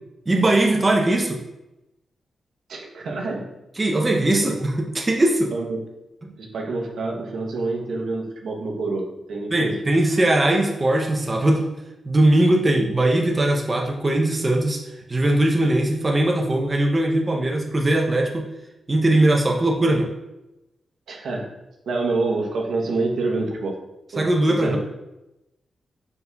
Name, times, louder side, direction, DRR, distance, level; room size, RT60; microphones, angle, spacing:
voice 1, 0.3-1.4 3.8-5.5 6.2-6.3 9.5-11.7 12.0-14.8 15.1-18.5 18.9-20.1 24.2-24.8, right 1 dB, 20° right, -1 dB, 0.6 m, -20 dB
voice 2, 2.7-3.5 5.5-5.8 6.4-9.8 21.1-21.5 21.9-23.8 24.1-24.8, right 3 dB, 80° right, -1 dB, 0.8 m, -27 dB
5.2 x 4.5 x 2.3 m, 0.95 s
wide cardioid pair, 120°, 0 cm